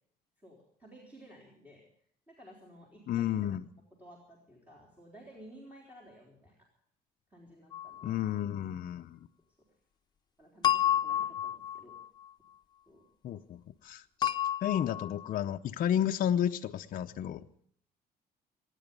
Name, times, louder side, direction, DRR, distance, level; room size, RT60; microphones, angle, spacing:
voice 1, 0.4-1.8 2.3-3.3 4.0-6.7 7.3-8.2 10.4-12.0 12.9-13.1, right 1 dB, 10° right, -3 dB, 3.6 m, -54 dB
voice 2, 3.1-3.6 8.0-9.2 13.2-14.3 14.6-17.4, left 10 dB, 55° left, 5 dB, 0.7 m, -32 dB
sound 1, 7.7-8.2 10.6-12.3 14.2-15.4, left 11 dB, 25° left, 1.1 m, -31 dB
24.0 x 10.0 x 5.3 m, 0.64 s
cardioid pair, 110°, 17 cm